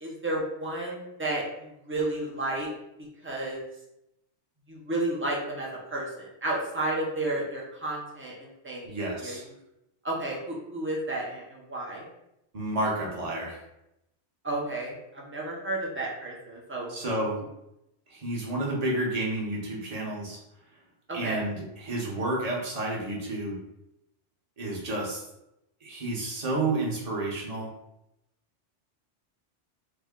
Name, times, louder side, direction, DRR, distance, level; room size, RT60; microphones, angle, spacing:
voice 1, 0.0-2.7 3.2-3.6 4.7-9.4 10.0-12.1 14.4-16.9 21.1-21.4, right 2 dB, 15° right, -3 dB, 0.4 m, -32 dB
voice 2, 8.9-9.4 12.5-13.6 16.9-17.4 18.1-20.4 21.1-23.6 24.6-25.2 25.8-27.7, right 2 dB, 35° right, -3 dB, 0.8 m, -30 dB
3.4 x 2.1 x 3.6 m, 0.85 s
omnidirectional pair, 1.2 m